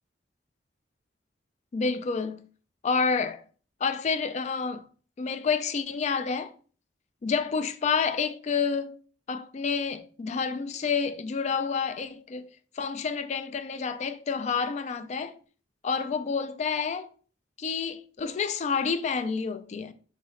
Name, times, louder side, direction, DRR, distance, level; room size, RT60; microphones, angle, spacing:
voice 1, 1.7-2.5 2.8-3.4 3.8-4.9 5.2-6.5 7.2-9.0 9.3-12.5 12.8-15.4 15.8-17.1 17.6-19.9, left 5 dB, 40° left, 0.3 m, -29 dB
2.8 x 2.8 x 4.3 m
head